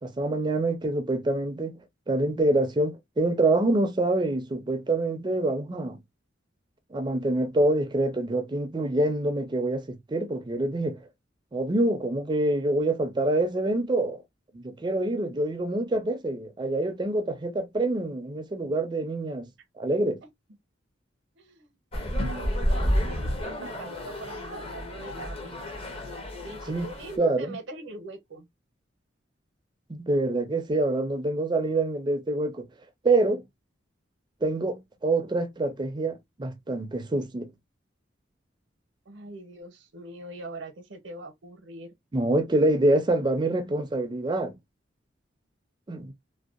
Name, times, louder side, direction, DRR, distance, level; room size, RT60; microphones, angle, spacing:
voice 1, 0.0-6.0 6.9-11.1 11.5-14.2 14.5-19.5 19.8-20.2 26.7-26.9 27.2-27.5 29.9-32.7 33.0-33.4 34.4-37.5 42.1-44.5 45.9-46.1, right 2 dB, 25° right, 0.4 m, -26 dB
voice 2, 21.3-21.7 22.1-25.8 26.4-28.5 39.1-41.9, right 2 dB, 75° right, 0.7 m, -42 dB
sound 1, 21.9-27.2, equal, 30° left, 0.6 m, -30 dB
2.6 x 2.1 x 2.3 m
head